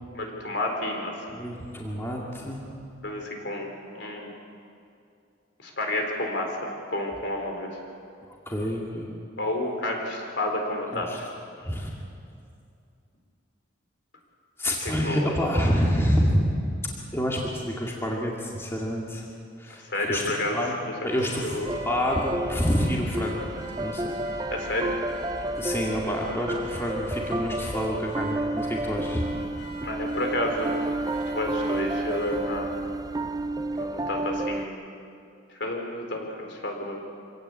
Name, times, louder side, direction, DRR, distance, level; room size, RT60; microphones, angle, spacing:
voice 1, 0.1-1.1 3.0-4.3 5.6-6.5 6.9-7.7 9.4-11.2 15.0-15.3 19.8-20.6 21.4-21.6 24.5-24.9 29.8-30.7 31.3-32.7 33.7-34.8 35.6-37.0, left 1 dB, 55° left, 2 dB, 4.2 m, -30 dB
voice 2, 1.3-2.7 8.3-9.1 10.9-11.2 11.6-11.9 14.6-16.6 17.1-19.2 19.6-20.2 20.5-20.7 21.0-21.6 21.9-23.4 23.8-24.1 25.6-29.2, equal, 10° left, -2 dB, 2.3 m, -27 dB
Car / Alarm, 21.1-32.5, right 1 dB, 90° left, 5.7 m, -44 dB
sound 1, 21.7-34.7, right 1 dB, 20° right, 0.5 m, -31 dB
25.5 x 17.5 x 8.5 m, 2.5 s
head